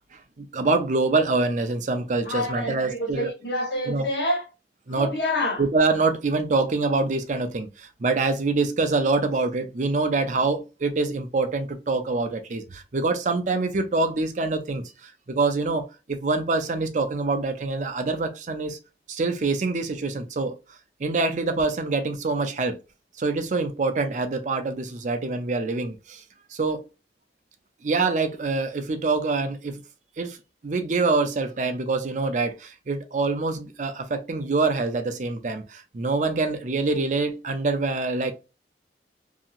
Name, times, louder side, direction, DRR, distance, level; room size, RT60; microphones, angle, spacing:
voice 1, 0.4-3.3 3.9-4.1 4.9-5.1 5.6-18.8 19.1-20.6 21.0-22.8 23.2-26.2 26.5-26.8 27.8-29.8 30.2-30.4 30.6-38.3, right 3 dB, 45° right, 0.5 m, -25 dB
voice 2, 2.2-4.4 4.9-5.6, left 1 dB, 75° left, 1.1 m, -27 dB
2.8 x 2.7 x 2.4 m
head